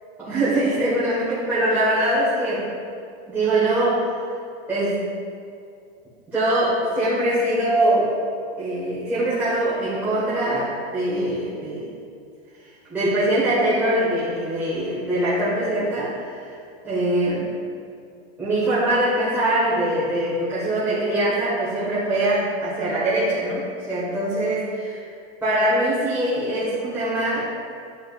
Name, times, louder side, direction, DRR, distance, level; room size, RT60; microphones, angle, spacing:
voice 1, 0.2-2.7 3.3-4.3 4.7-5.1 6.3-8.1 8.6-11.9 12.9-16.6 16.8-17.5 18.4-25.1 25.4-27.5, right 1 dB, 5° right, -12 dB, 1.2 m, -23 dB
10.0 x 4.4 x 2.3 m, 2.4 s
supercardioid pair, 160°, 31 cm